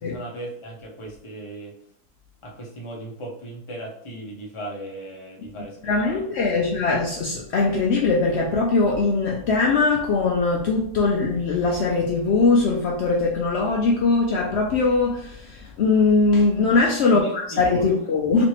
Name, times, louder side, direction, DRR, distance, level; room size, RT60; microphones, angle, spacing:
voice 1, 0.0-1.7 2.4-5.8 6.0-6.6 17.0-18.0, right 1 dB, 30° left, -2 dB, 0.5 m, -37 dB
voice 2, 5.8-18.4, left 3 dB, 85° left, -1 dB, 0.5 m, -21 dB
3.2 x 3.0 x 3.0 m, 0.66 s
omnidirectional pair, 1.7 m